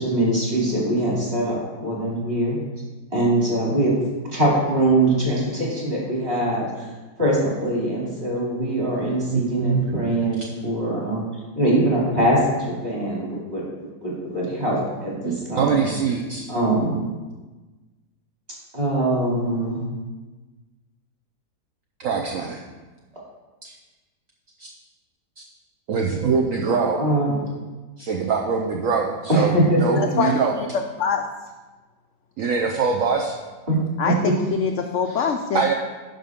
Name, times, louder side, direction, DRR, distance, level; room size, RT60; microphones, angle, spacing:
voice 1, 0.0-2.6 3.1-3.9 4.3-6.8 7.2-11.2 11.6-15.9 16.5-17.0 18.7-19.8 27.0-27.6 29.3-30.0 33.7-33.8 34.2-34.3, right 1 dB, 35° right, -5 dB, 2.9 m, -22 dB
voice 2, 9.3-9.9 15.2-16.5 22.0-22.6 23.6-23.7 24.6-24.7 25.4-25.5 25.9-27.0 28.0-30.5 32.4-33.4 35.1-35.2 35.5-35.7, right 5 dB, 60° right, 0 dB, 1.0 m, -23 dB
voice 3, 30.0-30.7 31.0-31.2 34.0-35.7, left 6 dB, 70° left, 4 dB, 0.7 m, -24 dB
10.5 x 5.5 x 3.6 m, 1.2 s
omnidirectional pair, 1.8 m